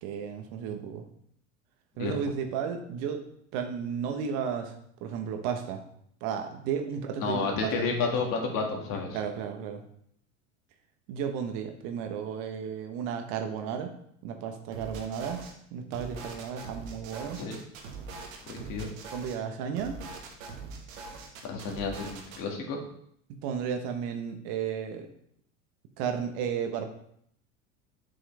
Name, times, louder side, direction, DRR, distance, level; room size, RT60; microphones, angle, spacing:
voice 1, 0.0-1.0 2.0-3.2 3.5-4.7 5.0-5.8 6.2-7.7 8.0-8.1 9.1-9.8 11.1-13.9 14.2-15.4 15.7-17.4 18.6-18.7 19.1-20.0 23.4-25.1 26.0-26.8, right 7 dB, 60° right, 6 dB, 1.3 m, -33 dB
voice 2, 7.2-9.2 17.4-17.6 18.4-18.9 21.4-22.8, left 4 dB, 55° left, 1 dB, 2.2 m, -31 dB
sound 1, 14.7-15.5 15.9-19.4 19.7-22.4, right 4 dB, 75° right, 1.6 m, -42 dB
7.9 x 6.1 x 3.4 m, 0.69 s
hypercardioid pair, 85°, 40 cm